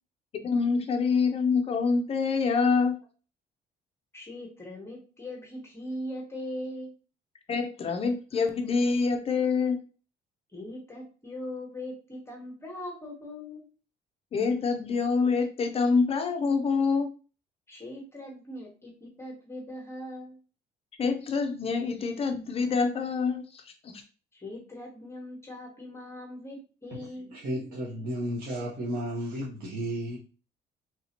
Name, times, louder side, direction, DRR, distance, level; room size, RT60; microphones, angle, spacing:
voice 1, 0.4-3.0 7.5-9.8 14.3-17.1 21.0-24.0, left 4 dB, 35° left, 5 dB, 0.4 m, -26 dB
voice 2, 4.1-6.9 10.5-13.6 17.7-20.4 24.3-27.3, left 1 dB, 15° left, -1 dB, 0.9 m, -40 dB
voice 3, 26.9-30.2, equal, 65° right, -4 dB, 1.0 m, -33 dB
3.1 x 2.7 x 2.8 m, 0.36 s
cardioid pair, 145°, 17 cm